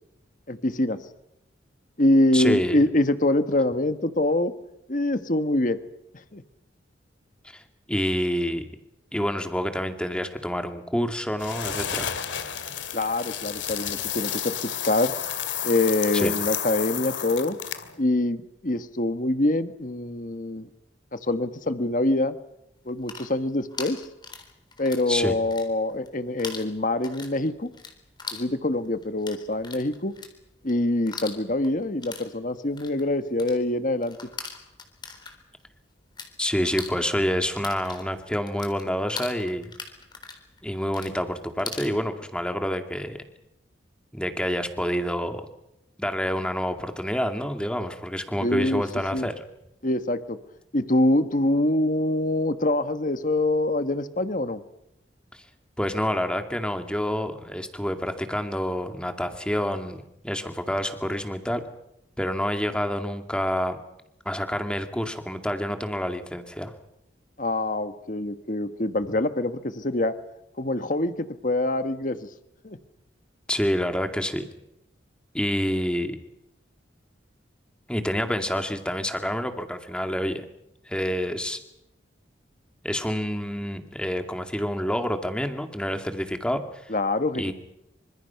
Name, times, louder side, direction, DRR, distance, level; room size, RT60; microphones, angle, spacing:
voice 1, 0.5-1.0 2.0-4.5 4.9-5.8 6.3-6.4 12.9-15.1 15.6-17.6 18.0-20.7 21.1-22.4 22.8-24.0 24.8-27.7 28.3-30.1 30.6-34.2 48.4-48.8 49.1-49.3 49.8-50.4 50.7-54.6 67.4-70.2 70.6-72.3 72.6-72.8 86.9-87.5, left 1 dB, 45° left, 10 dB, 1.4 m, -25 dB
voice 2, 2.3-2.8 7.4-7.6 7.9-8.6 9.1-12.1 16.2-16.3 25.1-25.3 36.4-39.7 40.6-43.2 44.1-45.4 46.0-49.3 55.3-55.4 55.8-61.6 62.2-63.8 64.3-66.7 73.5-74.4 75.3-76.2 77.9-80.5 80.9-81.6 82.8-86.9 87.4-87.5, equal, 5° left, 6 dB, 2.3 m, -28 dB
sound 1, 11.4-18.0, left 9 dB, 85° left, 2.4 m, -31 dB
sound 2, 22.8-25.1 25.4-26.1 26.4-36.3 36.6-41.9, left 5 dB, 25° left, 3.9 m, -40 dB
27.5 x 26.0 x 5.9 m, 0.83 s
head